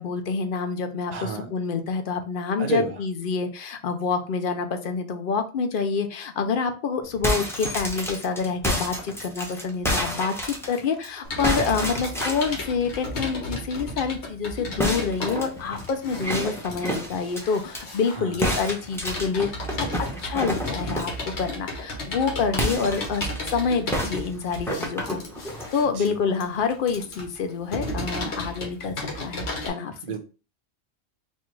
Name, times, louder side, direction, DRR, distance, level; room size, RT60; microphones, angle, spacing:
voice 1, 0.0-19.5 19.7-19.9 20.2-25.2 25.7-30.0, left 5 dB, 55° left, 7 dB, 0.7 m, -27 dB
voice 2, 1.1-1.5 2.6-3.0 11.4-11.9 18.1-18.5 25.9-26.2 30.0-30.2, right 5 dB, 45° right, 5 dB, 0.7 m, -32 dB
sound 1, 7.1-11.1 11.4-12.6 14.8-17.8 18.4-21.2 22.5-23.5 23.9-25.7, equal, 5° left, 0.7 m, -29 dB
Computer keyboard, 11.2-29.7, left 1 dB, 75° left, 1.3 m, -34 dB
4.3 x 2.4 x 3.1 m, 0.35 s
omnidirectional pair, 1.1 m